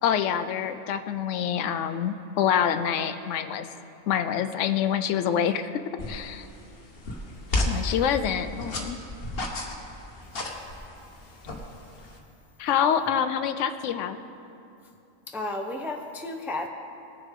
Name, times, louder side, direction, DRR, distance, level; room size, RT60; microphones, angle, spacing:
voice 1, 0.0-3.7 4.1-5.8 6.1-6.5 7.6-9.0 12.6-14.2, left 8 dB, 70° left, 10 dB, 0.9 m, -26 dB
sound 1, 6.0-12.2, left 2 dB, 50° left, 1.3 m, -33 dB
voice 2, 15.3-16.7, left 2 dB, ahead, 3 dB, 0.4 m, -32 dB
19.5 x 6.8 x 3.7 m, 2.7 s
omnidirectional pair, 1.4 m